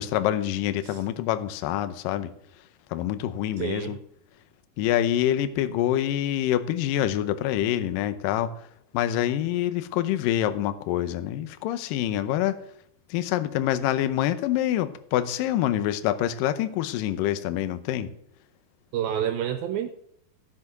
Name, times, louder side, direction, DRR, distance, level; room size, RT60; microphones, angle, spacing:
voice 1, 0.0-2.3 2.9-4.0 4.8-8.5 8.9-12.6 13.1-18.1, left 12 dB, 75° left, 2.1 m, -26 dB
voice 2, 3.6-4.0 18.9-19.9, right 9 dB, 80° right, 2.2 m, -28 dB
15.5 x 6.1 x 6.6 m
omnidirectional pair, 4.7 m